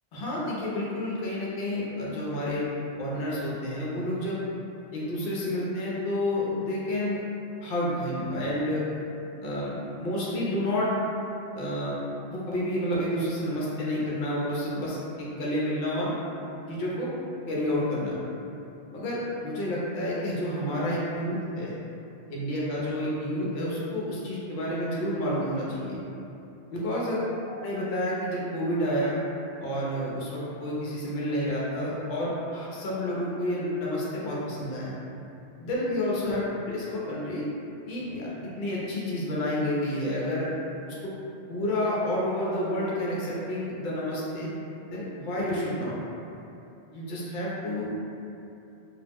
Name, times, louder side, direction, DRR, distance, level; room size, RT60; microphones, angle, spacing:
voice 1, 0.1-2.7 3.0-4.4 4.9-7.2 7.6-8.8 9.4-10.9 11.5-12.0 12.3-16.1 16.7-17.1 17.5-18.2 18.9-21.7 22.3-26.0 26.7-27.2 27.6-29.1 29.6-34.9 35.6-37.4 37.9-40.5 40.9-41.1 41.5-44.5 44.9-46.0 46.9-47.9, left 1 dB, 60° left, -6 dB, 0.6 m, -29 dB
2.3 x 2.0 x 3.3 m, 2.9 s
omnidirectional pair, 1.2 m